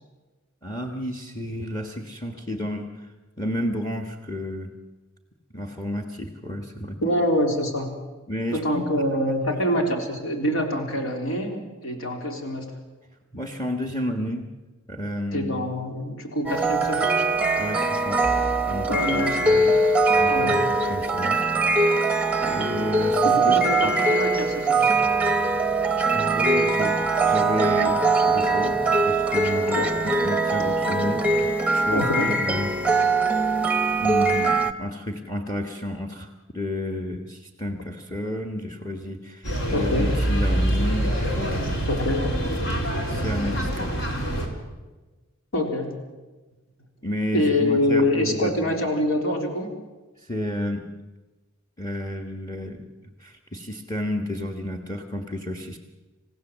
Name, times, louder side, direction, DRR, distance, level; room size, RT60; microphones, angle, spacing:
voice 1, 0.6-3.1 3.4-4.7 5.5-7.0 8.3-9.1 9.5-9.6 9.9-10.0 13.3-14.5 14.9-15.6 17.6-23.6 23.8-23.9 26.1-28.8 29.0-32.7 33.6-36.3 36.5-41.8 43.1-43.9 47.0-48.7 50.2-50.9 51.8-52.8 53.2-55.8, left 1 dB, 20° left, 4 dB, 1.5 m, -31 dB
voice 2, 7.0-8.0 8.5-12.7 15.3-17.2 18.9-19.6 20.3-20.6 23.2-24.9 29.8-29.9 31.9-32.3 39.7-40.2 41.9-42.3 45.5-45.9 47.3-49.8, left 1 dB, 85° left, 2 dB, 3.7 m, -25 dB
sound 1, 16.5-34.7, right 3 dB, 5° right, 0.9 m, -22 dB
sound 2, 39.4-44.5, right 1 dB, 65° left, 4.2 m, -25 dB
28.0 x 16.0 x 7.5 m, 1.2 s
head